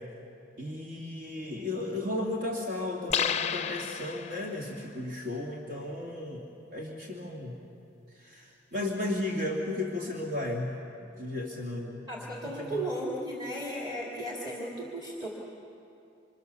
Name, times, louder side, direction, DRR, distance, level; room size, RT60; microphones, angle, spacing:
voice 1, 0.6-7.5 8.1-10.8 11.2-12.0 12.6-12.9, left 1 dB, 60° right, -2 dB, 2.6 m, -34 dB
sound 1, 3.1-4.7, left 8 dB, 35° left, 0.5 m, -31 dB
voice 2, 12.1-15.3, right 1 dB, 25° right, -4 dB, 2.9 m, -35 dB
28.0 x 25.5 x 7.0 m, 2.6 s
head